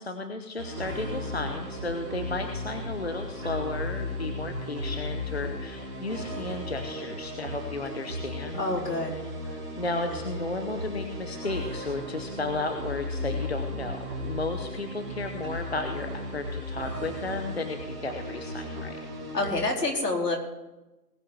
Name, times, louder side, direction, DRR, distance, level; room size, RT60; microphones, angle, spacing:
voice 1, 0.0-8.6 9.1-19.0, left 2 dB, 40° left, 5 dB, 1.0 m, -34 dB
sound 1, 0.6-19.5, left 1 dB, 15° right, 3.0 m, -36 dB
voice 2, 8.6-9.2 19.3-20.4, left 2 dB, 75° left, 0 dB, 4.1 m, -27 dB
19.5 x 6.6 x 5.7 m, 1.0 s
hypercardioid pair, 180°, 49 cm